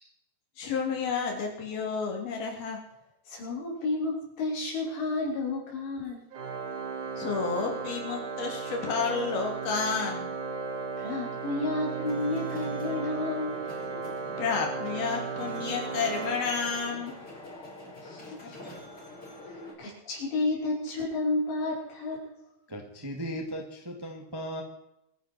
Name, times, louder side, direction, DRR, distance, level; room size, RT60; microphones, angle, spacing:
voice 1, 0.6-2.8 7.2-10.3 14.4-17.2 18.2-18.3, left 5 dB, 60° left, 1 dB, 5.1 m, -31 dB
voice 2, 3.3-6.2 11.0-13.7 18.0-18.6 19.5-22.5, left 2 dB, 90° left, -3 dB, 8.0 m, -31 dB
Organ, 6.3-17.1, right 4 dB, 55° right, 2.7 m, -35 dB
sound 1, 11.5-19.7, left 1 dB, 30° left, 6.2 m, -45 dB
voice 3, 22.7-24.6, equal, 10° right, 2 dB, 1.4 m, -37 dB
26.5 x 11.0 x 4.6 m, 0.82 s
omnidirectional pair, 4.8 m